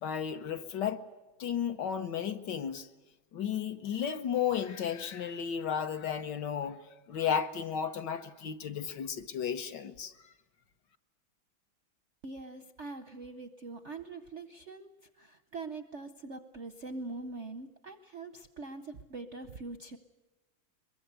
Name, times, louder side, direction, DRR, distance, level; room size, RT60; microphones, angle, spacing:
voice 1, 0.0-1.0 1.4-2.9 3.3-6.8 7.1-10.1, left 8 dB, 60° left, 1.5 m, -33 dB
voice 2, 12.2-14.9 15.2-20.0, right 3 dB, 55° right, 0.8 m, -43 dB
22.5 x 22.5 x 8.1 m
omnidirectional pair, 2.3 m